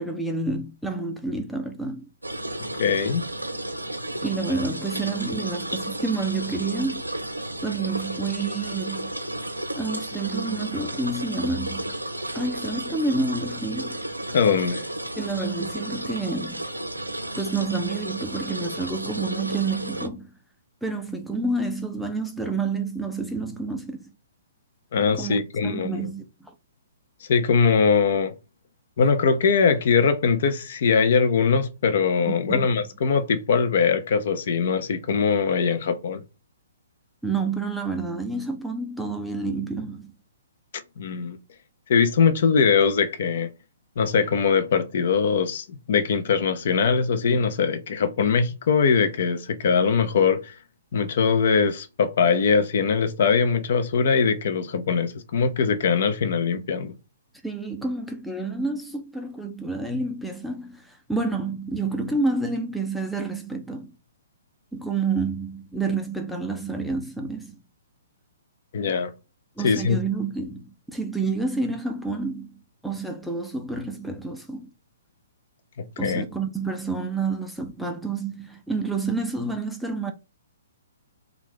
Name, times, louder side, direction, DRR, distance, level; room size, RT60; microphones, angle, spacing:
voice 1, 0.0-2.1 4.2-7.0 7.6-9.2 9.8-12.0 12.3-14.0 15.2-16.7 17.4-20.3 20.8-24.1 25.1-26.5 32.5-32.7 37.2-40.1 57.4-63.9 64.7-67.6 69.6-74.7 76.0-80.1, right 3 dB, ahead, 0.4 m, -29 dB
sound 1, 2.2-20.1, right 1 dB, 90° right, 0.5 m, -33 dB
voice 2, 2.8-3.2 14.3-14.9 24.9-26.0 27.2-28.3 29.0-36.2 41.0-41.4 41.9-43.5 44.0-50.5 50.9-56.9 68.7-69.1 69.6-70.0 75.8-76.2, left 5 dB, 50° left, 0.5 m, -21 dB
2.5 x 2.3 x 3.4 m
figure-of-eight pair, 125°, 0 cm